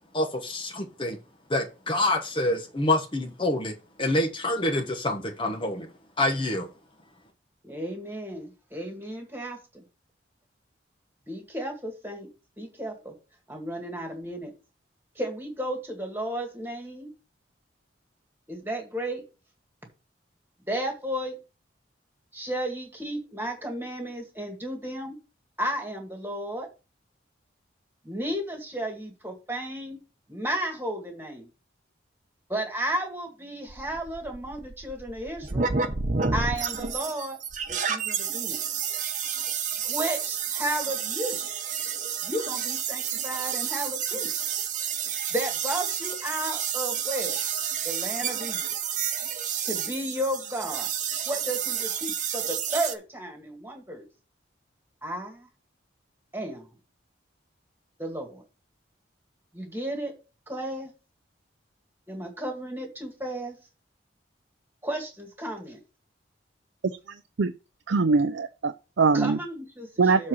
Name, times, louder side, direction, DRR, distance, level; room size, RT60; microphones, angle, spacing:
voice 1, 0.1-1.2 1.5-6.7, left 1 dB, 25° left, 1.0 m, -27 dB
voice 2, 7.6-9.8 11.3-12.3 12.6-13.1 13.5-14.5 15.2-17.1 18.5-19.2 20.7-21.4 22.3-25.2 25.6-26.7 28.0-30.0 30.3-31.5 32.5-35.7 36.3-37.4 37.7-38.6 39.8-41.4 42.2-44.3 45.3-47.4 47.8-48.8 49.6-50.9 51.3-54.1 55.0-55.5 56.3-56.7 58.0-58.4 59.5-60.1 60.5-60.9 62.1-63.6 64.8-65.8 69.1-70.3, right 1 dB, 10° right, 2.1 m, -33 dB
sound 1, 33.7-52.9, right 7 dB, 40° right, 0.9 m, -30 dB
voice 3, 67.9-69.4 70.0-70.3, right 4 dB, 75° right, 0.5 m, -22 dB
7.5 x 4.3 x 6.2 m
head